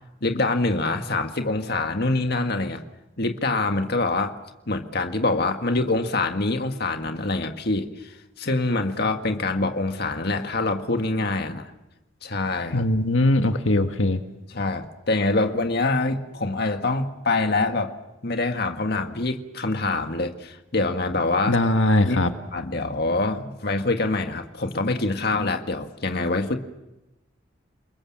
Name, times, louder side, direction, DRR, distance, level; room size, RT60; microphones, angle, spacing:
voice 1, 0.2-2.8 3.2-4.3 4.7-11.7 12.2-12.9 14.5-17.9 18.2-21.6 22.0-22.2 22.5-26.6, left 2 dB, 55° left, 5 dB, 1.8 m, -25 dB
voice 2, 12.7-14.2 21.5-22.3, left 1 dB, 85° left, 7 dB, 1.6 m, -20 dB
30.0 x 21.0 x 7.5 m, 0.98 s
head